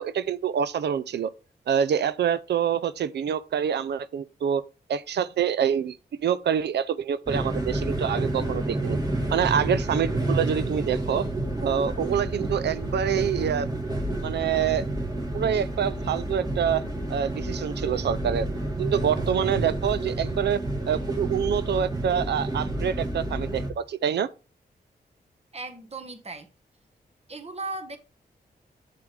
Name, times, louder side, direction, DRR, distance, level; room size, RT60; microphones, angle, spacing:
voice 1, 0.0-1.3 1.7-4.6 4.9-9.0 9.3-11.3 11.6-13.7 14.2-14.9 15.3-16.8 17.1-18.5 18.8-20.6 20.9-24.3, right 8 dB, 85° right, 0.5 m, -26 dB
sound 1, 7.3-23.7, right 1 dB, 20° right, 2.4 m, -29 dB
voice 2, 25.5-26.5 27.3-28.0, right 3 dB, 35° right, 1.4 m, -36 dB
7.7 x 6.9 x 3.3 m
cardioid pair, 60°, 17 cm